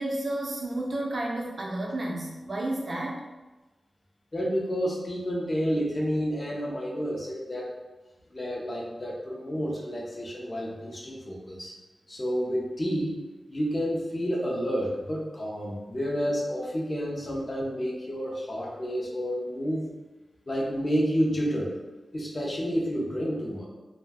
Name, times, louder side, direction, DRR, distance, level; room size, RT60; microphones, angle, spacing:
voice 1, 0.0-3.2, right 1 dB, 50° right, -2 dB, 0.5 m, -31 dB
voice 2, 4.3-7.7 8.3-11.7 12.1-13.1 13.5-19.8 20.5-21.8 22.1-23.7, equal, 30° left, -3 dB, 0.5 m, -30 dB
2.5 x 2.0 x 3.4 m, 1.2 s
wide cardioid pair, 95°, 0 cm